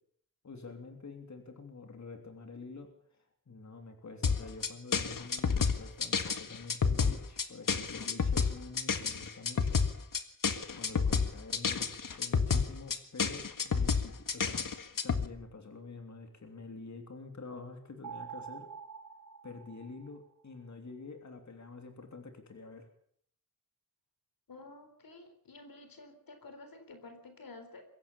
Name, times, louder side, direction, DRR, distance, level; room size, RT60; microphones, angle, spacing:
voice 1, 0.4-9.8 10.7-18.7 19.4-22.9, left 3 dB, 55° left, 5 dB, 3.3 m, -47 dB
sound 1, 4.2-15.3, left 5 dB, 70° left, 1.7 m, -30 dB
sound 2, 18.0-20.5, right 7 dB, 70° right, 2.3 m, -46 dB
voice 2, 24.5-27.8, left 3 dB, 85° left, 8 dB, 3.9 m, -51 dB
23.0 x 16.5 x 7.2 m, 0.64 s
wide cardioid pair, 110°, 34 cm